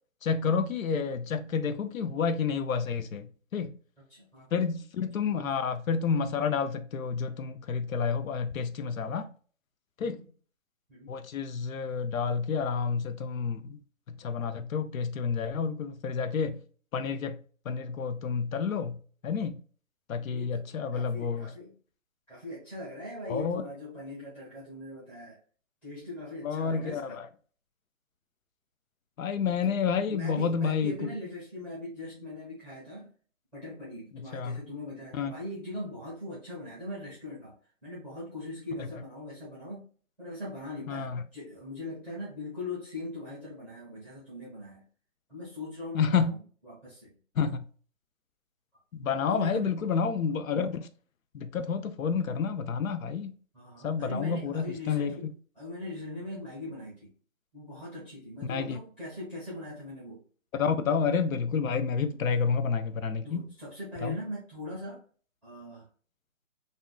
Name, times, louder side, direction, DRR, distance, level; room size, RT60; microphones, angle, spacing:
voice 1, 0.2-3.3 3.5-3.7 4.5-9.3 10.0-10.2 11.1-13.8 14.2-16.6 16.9-17.4 17.7-19.0 19.2-19.6 20.1-21.5 23.3-23.6 26.4-27.2 29.2-30.9 34.3-34.6 35.1-35.3 40.9-41.2 45.9-46.3 47.4-47.7 49.0-50.8 51.3-53.3 53.8-55.1 58.5-58.8 60.5-63.5 64.0-64.2, left 6 dB, 75° left, 0.6 m, -29 dB
voice 2, 4.0-4.6 10.0-10.3 10.9-11.2 20.3-20.6 20.9-21.8 22.3-25.4 25.8-27.2 29.5-29.7 30.1-33.1 33.5-37.5 37.8-39.9 40.2-44.8 45.3-46.4 46.6-47.1 49.3-49.7 53.5-55.3 55.5-57.1 57.5-60.2 62.1-62.2 63.2-65.0 65.4-65.9, left 1 dB, 5° left, 0.7 m, -41 dB
3.4 x 2.7 x 2.2 m
hypercardioid pair, 160°, 41 cm